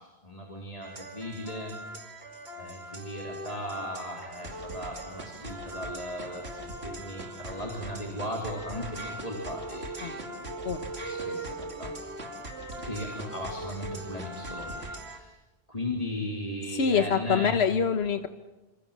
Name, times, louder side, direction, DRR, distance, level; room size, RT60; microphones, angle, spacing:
voice 1, 0.0-1.7 2.6-11.9 12.7-15.3 15.7-17.6, left 1 dB, 35° left, -1 dB, 3.9 m, -37 dB
sound 1, 0.8-15.2, right 1 dB, 85° right, 2.9 m, -40 dB
voice 2, 16.7-18.3, left 6 dB, 85° left, 7 dB, 1.4 m, -25 dB
28.0 x 26.5 x 7.4 m, 1.1 s
omnidirectional pair, 1.0 m